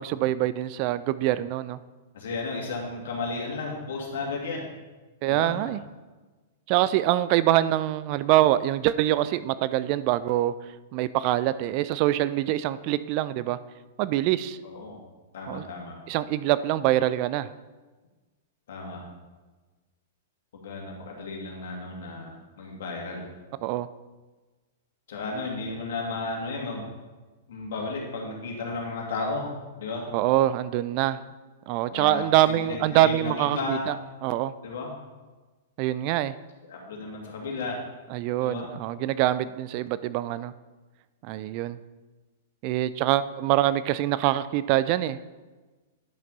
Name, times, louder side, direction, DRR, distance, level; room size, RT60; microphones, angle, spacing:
voice 1, 0.0-1.8 5.2-5.8 6.7-10.5 10.9-13.6 14.0-14.6 15.5-15.6 16.1-17.5 23.6-23.9 30.1-31.2 31.7-33.9 34.2-34.5 35.8-36.3 38.1-40.5 41.2-41.8 42.6-45.2, right 14 dB, 45° right, 15 dB, 0.3 m, -24 dB
voice 2, 2.1-4.7 5.2-5.6 14.6-15.0 15.3-15.9 18.7-19.0 20.6-23.2 25.1-26.8 27.5-29.5 29.8-30.1 31.9-33.9 34.6-34.9 36.7-37.8 38.4-38.7, left 3 dB, 65° left, -1 dB, 2.3 m, -33 dB
10.5 x 5.9 x 4.0 m, 1.3 s
hypercardioid pair, 110°, 0 cm